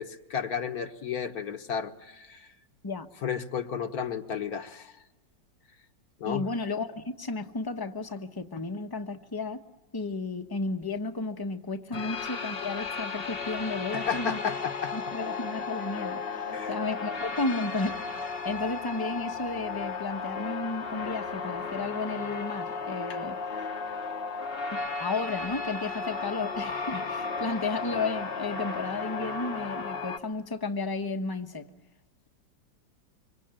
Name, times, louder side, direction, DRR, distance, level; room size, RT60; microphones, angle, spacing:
voice 1, 0.0-2.5 3.2-4.9 6.2-6.4 13.9-14.9 16.5-16.8 23.1-23.2, left 7 dB, 55° left, 8 dB, 1.6 m, -33 dB
voice 2, 6.3-9.6 9.9-14.5 14.9-23.4 24.7-31.7, left 3 dB, 15° left, 7 dB, 0.9 m, -33 dB
sound 1, 11.9-30.2, left 4 dB, 40° left, 1.1 m, -34 dB
25.5 x 25.0 x 8.9 m, 1.1 s
omnidirectional pair, 2.0 m